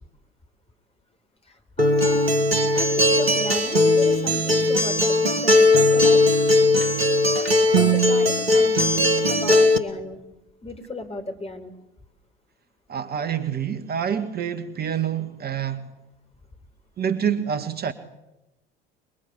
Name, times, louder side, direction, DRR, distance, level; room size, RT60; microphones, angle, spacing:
voice 1, 1.4-2.3 2.7-6.2 7.7-10.2 10.6-11.7, left 2 dB, 20° left, 4.7 m, -35 dB
Acoustic guitar, 1.8-9.8, left 1 dB, 85° right, 1.8 m, -18 dB
voice 2, 12.9-15.9 17.0-17.9, right 8 dB, 35° right, 1.7 m, -27 dB
26.0 x 23.0 x 8.7 m
figure-of-eight pair, 65°, 29 cm